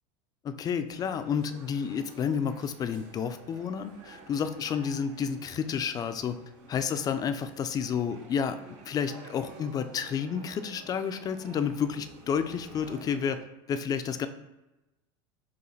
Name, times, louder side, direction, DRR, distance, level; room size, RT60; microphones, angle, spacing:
voice 1, 0.4-6.4 6.7-8.6 8.9-14.3, left 7 dB, 25° left, 10 dB, 0.3 m, -30 dB
sound 1, 0.9-13.4, right 4 dB, 55° right, 0.9 m, -51 dB
4.7 x 2.9 x 3.2 m, 1.0 s
supercardioid pair, 110°, 15 cm